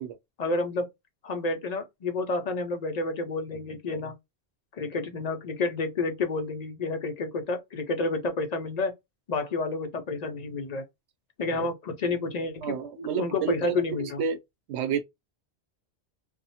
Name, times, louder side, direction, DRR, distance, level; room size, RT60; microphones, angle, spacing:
voice 1, 0.4-0.9 1.2-4.1 4.7-8.9 9.3-10.8 11.4-12.8 13.2-14.2, left 3 dB, 50° left, 0.5 m, -30 dB
voice 2, 12.6-14.4 14.7-15.0, right 7 dB, 90° right, 0.9 m, -30 dB
2.8 x 2.1 x 2.7 m
omnidirectional pair, 1.1 m